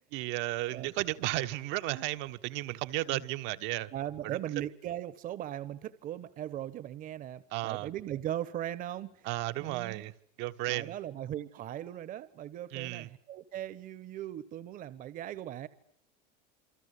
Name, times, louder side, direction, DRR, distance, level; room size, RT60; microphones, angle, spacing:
voice 1, 0.1-3.9 4.2-4.4 7.5-7.9 9.2-10.1 10.4-10.9 12.7-13.1, right 17 dB, 60° right, 1.4 m, -34 dB
voice 2, 3.9-9.3 9.6-10.0 10.7-15.7, right 12 dB, 40° right, 1.3 m, -39 dB
28.0 x 24.0 x 8.4 m
supercardioid pair, 135°, 21 cm